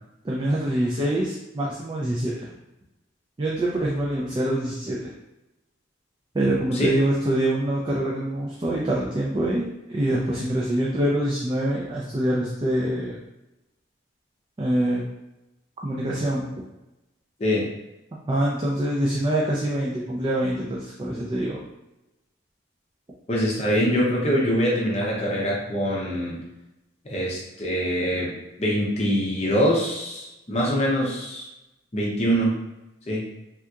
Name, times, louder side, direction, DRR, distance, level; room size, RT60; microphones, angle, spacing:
voice 1, 0.2-2.5 3.4-5.1 6.3-13.2 14.6-15.1 15.8-16.5 18.3-21.6, right 1 dB, 25° right, -4 dB, 0.3 m, -25 dB
voice 2, 23.3-26.4 27.1-28.3 28.6-31.5 31.9-32.5 33.1-33.2, equal, 35° left, -4 dB, 0.6 m, -24 dB
3.5 x 2.7 x 2.3 m, 0.95 s
head